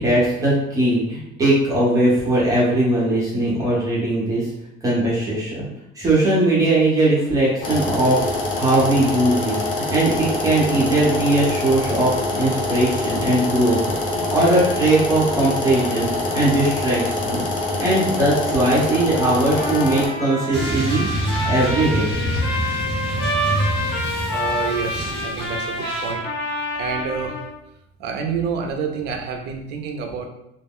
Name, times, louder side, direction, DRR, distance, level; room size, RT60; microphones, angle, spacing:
voice 1, 0.0-4.5 4.8-5.6 5.9-17.4 17.8-21.1 21.5-22.1, right 1 dB, 15° right, -7 dB, 0.7 m, -20 dB
sound 1, 7.6-20.1, left 2 dB, 40° left, 0.5 m, -25 dB
Trumpet, 19.5-27.5, left 1 dB, 80° left, 1.0 m, -27 dB
sound 2, 20.5-26.1, right 1 dB, 20° left, 0.9 m, -26 dB
voice 2, 24.3-26.3 26.7-27.4 28.0-30.3, right 5 dB, 55° right, 3 dB, 0.4 m, -28 dB
2.3 x 2.0 x 3.5 m, 0.86 s
cardioid pair, 175°, 21 cm